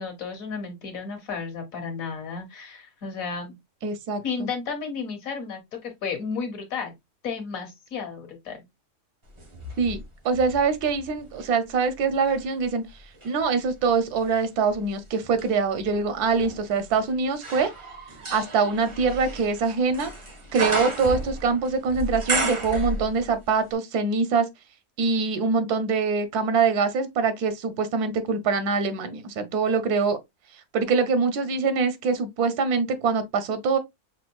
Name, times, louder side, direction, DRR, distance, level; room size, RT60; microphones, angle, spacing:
voice 1, 0.0-3.5 4.2-6.9 7.2-8.6, left 5 dB, 65° left, 1.5 m, -33 dB
voice 2, 3.8-4.5 9.8-10.0 10.2-12.8 13.2-17.7 18.3-20.1 20.5-24.5 25.0-30.2 30.7-33.8, right 5 dB, 90° right, 1.2 m, -24 dB
sound 1, 9.4-11.6 12.1-23.4 23.7-23.8, right 2 dB, 25° right, 0.8 m, -34 dB
6.0 x 2.5 x 2.2 m
omnidirectional pair, 1.6 m